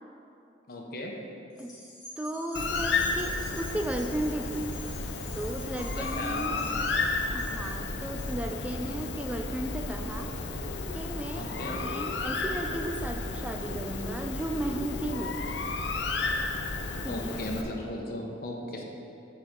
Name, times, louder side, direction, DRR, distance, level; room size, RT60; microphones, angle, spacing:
voice 1, 0.7-1.2 6.0-6.9 11.3-11.9 17.1-18.8, left 1 dB, 55° left, 0 dB, 1.0 m, -36 dB
sound 1, 1.5-10.2 10.7-10.8, left 1 dB, 20° left, 1.9 m, -50 dB
voice 2, 2.2-4.7 5.3-6.6 7.3-10.4 10.9-15.4 17.0-17.5, right 1 dB, 5° right, 4 dB, 0.3 m, -35 dB
Bird, 2.5-17.6, left 3 dB, 80° left, 0.6 m, -33 dB
sound 2, 10.5-11.0 11.7-12.2 12.5-13.0 13.6-14.1 14.6-15.2, left 3 dB, 30° right, 1.6 m, -43 dB
8.2 x 4.3 x 6.6 m, 2.7 s
head